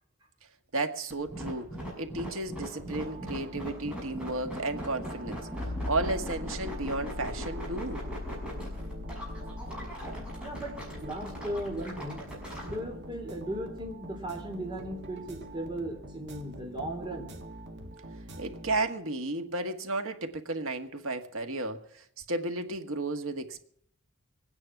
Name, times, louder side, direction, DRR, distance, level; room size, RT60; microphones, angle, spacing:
voice 1, 0.7-1.7 2.0-8.0 18.4-23.7, right 2 dB, 85° right, 1.6 m, -33 dB
sound 1, 1.1-12.7, equal, 5° right, 6.2 m, -40 dB
sound 2, 2.8-19.2, right 1 dB, 55° right, 1.9 m, -45 dB
sound 3, 5.6-14.0 15.5-15.6, left 2 dB, 80° left, 0.8 m, -41 dB
voice 2, 10.4-12.2 12.6-17.4, right 1 dB, 20° right, 3.6 m, -37 dB
22.5 x 9.8 x 5.9 m
head